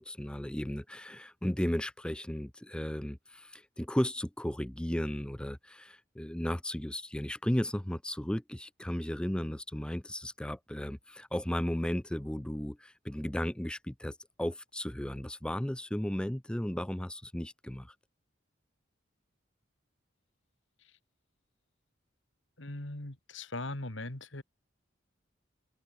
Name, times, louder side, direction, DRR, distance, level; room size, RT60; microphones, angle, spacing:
voice 1, 0.0-17.9, equal, 5° left, 0.4 m, -35 dB
voice 2, 22.6-24.4, left 2 dB, 70° left, 2.6 m, -39 dB
head